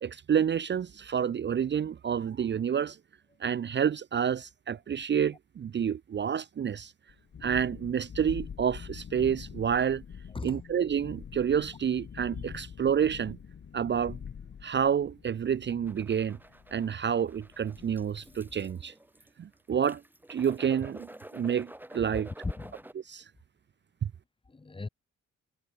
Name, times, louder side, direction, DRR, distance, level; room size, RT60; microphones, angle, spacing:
voice 1, 0.0-3.0 3.4-6.9 7.4-10.0 10.4-13.4 13.7-14.2 14.6-16.4 16.7-18.9 19.4-20.0 20.3-22.3 23.1-23.2 24.0-24.1, right 8 dB, 35° right, 0.6 m, -29 dB
Thunderstorm, 7.1-18.7, left 7 dB, 45° left, 5.3 m, -45 dB
sound 1, 15.9-22.9, right 1 dB, 5° right, 6.1 m, -49 dB
voice 2, 21.9-22.8 24.5-24.9, left 3 dB, 15° left, 1.3 m, -38 dB
cardioid pair, 90°, 30 cm